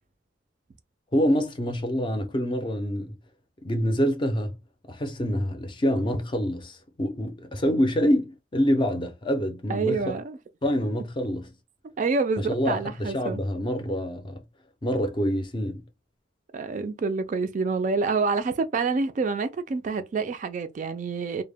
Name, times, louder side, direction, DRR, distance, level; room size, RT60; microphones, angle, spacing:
voice 1, 1.1-3.2 3.6-4.5 4.9-10.2 10.6-11.5 12.5-14.4 14.8-15.8, equal, 25° left, 0.5 m, -26 dB
voice 2, 9.7-10.4 12.0-13.4 16.5-21.4, right 4 dB, 45° right, 0.3 m, -27 dB
2.1 x 2.1 x 3.3 m
head